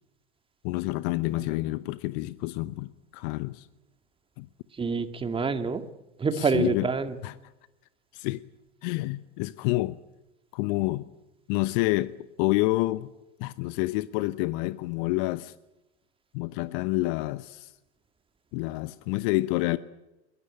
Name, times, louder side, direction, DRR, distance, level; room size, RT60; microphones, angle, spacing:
voice 1, 0.6-3.7 4.4-4.5 6.3-6.9 7.2-7.3 8.1-8.4 8.8-10.0 10.5-11.1 11.5-13.1 13.4-15.5 16.3-17.7 18.5-19.8, left 20 dB, 45° left, 0.9 m, -28 dB
voice 2, 4.8-5.9 6.2-7.2, right 4 dB, 15° right, 2.1 m, -27 dB
22.0 x 22.0 x 9.0 m
figure-of-eight pair, 95°, 33 cm